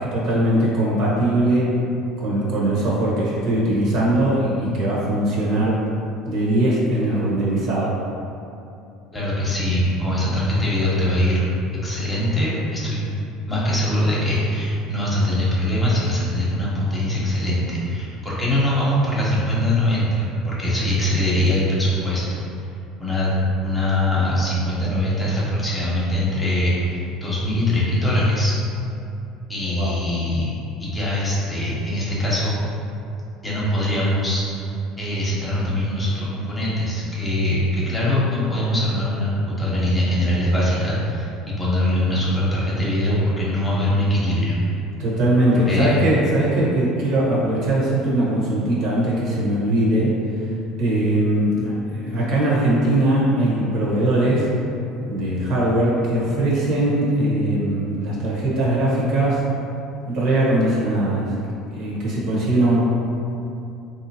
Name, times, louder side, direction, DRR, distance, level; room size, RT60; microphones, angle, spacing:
voice 1, 0.0-1.7 2.2-5.8 6.3-8.0 29.7-29.9 45.0-50.5 50.8-54.5 55.0-59.4 60.0-61.4 61.7-62.8, right 1 dB, 60° right, -6 dB, 1.1 m, -20 dB
voice 2, 9.1-11.5 11.8-13.0 13.5-22.4 23.0-23.3 23.6-28.5 29.5-30.5 30.8-32.5 33.4-34.6 35.0-41.3 41.6-44.6 45.7-45.9, left 1 dB, 15° left, -7 dB, 1.0 m, -22 dB
3.7 x 2.7 x 2.7 m, 2.7 s
supercardioid pair, 115°, 0 cm